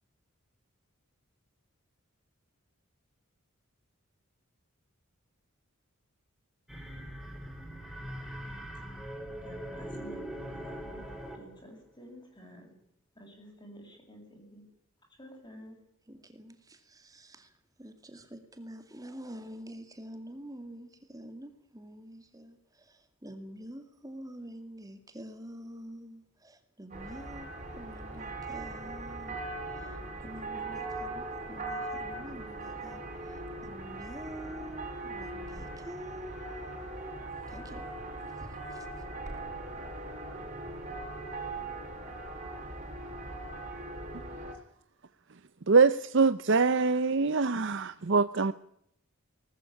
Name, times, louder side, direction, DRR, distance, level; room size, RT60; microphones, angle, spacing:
sound 1, 6.7-11.6, equal, ahead, 4.3 m, -41 dB
voice 1, 9.4-12.7 13.1-14.7 15.2-15.8, equal, 20° left, 1 dB, 7.6 m, -51 dB
voice 2, 16.1-17.5 17.8-37.2 37.5-37.8 38.3-39.0, equal, 15° right, 8 dB, 2.4 m, -47 dB
sound 2, 26.9-44.5, right 2 dB, 35° right, 7.9 m, -40 dB
voice 3, 45.7-48.5, right 4 dB, 55° right, 13 dB, 0.7 m, -24 dB
20.0 x 13.5 x 9.9 m, 0.74 s
head